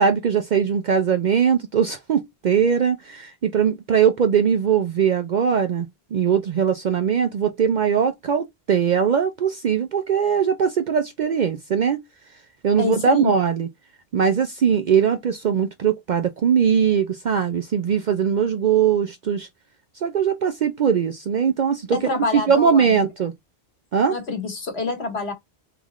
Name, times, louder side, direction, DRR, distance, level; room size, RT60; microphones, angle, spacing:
voice 1, 0.0-12.0 12.6-13.7 14.1-19.5 20.0-23.3 23.9-24.2, right 7 dB, 55° right, 0.5 m, -20 dB
voice 2, 12.8-13.3 21.9-23.0 24.1-25.3, left 3 dB, 70° left, 1.6 m, -27 dB
3.6 x 3.5 x 3.1 m
omnidirectional pair, 1.1 m